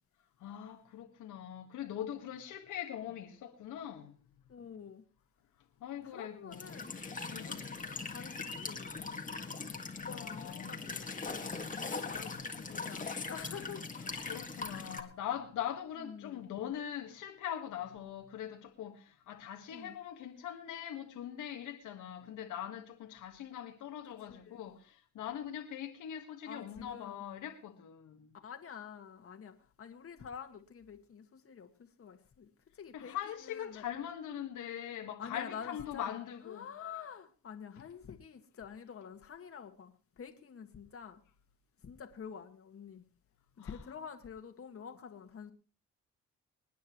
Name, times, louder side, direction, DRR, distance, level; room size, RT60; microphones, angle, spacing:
voice 1, 0.4-4.2 5.8-6.7 7.3-7.6 10.1-10.8 12.1-12.3 14.3-28.3 32.9-36.7 43.6-43.7, left 10 dB, 80° left, 1.7 m, -42 dB
voice 2, 4.5-5.0 6.0-6.9 7.4-9.4 10.1-11.2 11.7-14.0 16.0-16.4 19.7-19.9 24.1-24.6 26.4-27.2 28.4-33.9 35.2-36.1 36.4-41.2 41.8-43.1 43.6-45.5, left 7 dB, 50° left, 1.8 m, -48 dB
Walk footsteps / Chirp tweet / Stream, 6.5-15.0, left 4 dB, 25° left, 1.8 m, -41 dB
26.5 x 9.3 x 3.1 m
cardioid pair, 90°, 30 cm